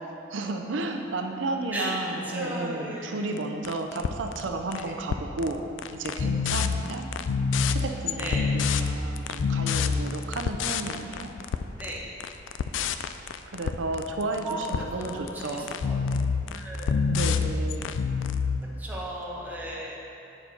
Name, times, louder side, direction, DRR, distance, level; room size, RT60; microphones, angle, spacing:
voice 1, 0.3-5.6 5.9-7.1 7.7-11.3 13.5-15.7 17.1-17.9, right 2 dB, 85° right, 4 dB, 0.6 m, -33 dB
voice 2, 2.3-3.3 4.8-4.9 8.2-8.5 11.8-12.0 14.4-16.0 16.5-17.0 18.8-20.0, equal, 10° right, -5 dB, 1.2 m, -36 dB
sound 1, 3.4-3.5 3.7-4.8 5.1-5.5 5.8-18.6, left 5 dB, 85° left, 0.4 m, -27 dB
7.8 x 7.0 x 4.3 m, 2.8 s
head